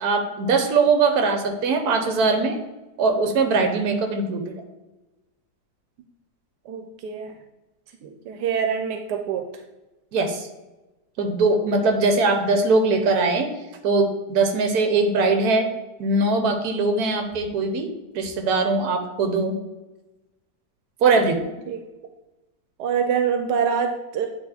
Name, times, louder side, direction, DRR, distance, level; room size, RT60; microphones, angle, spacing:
voice 1, 0.0-2.6 3.0-4.6 10.1-10.5 11.2-13.5 13.8-15.7 16.0-17.9 18.1-19.5 21.0-21.4, right 3 dB, 70° right, 6 dB, 1.4 m, -21 dB
voice 2, 6.7-7.3 8.0-9.5 21.7-21.8 22.8-24.3, right 7 dB, 90° right, 5 dB, 1.2 m, -25 dB
8.7 x 2.9 x 4.2 m, 1.1 s
omnidirectional pair, 1.7 m